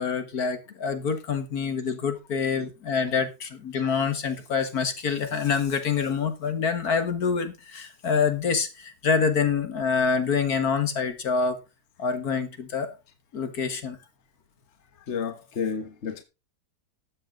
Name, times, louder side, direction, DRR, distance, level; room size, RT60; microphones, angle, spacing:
voice 1, 0.0-11.6 12.0-13.0 13.3-14.0, left 5 dB, 65° left, 2.0 m, -26 dB
voice 2, 15.1-16.2, left 6 dB, 45° left, 1.5 m, -31 dB
13.0 x 7.8 x 3.8 m
omnidirectional pair, 1.7 m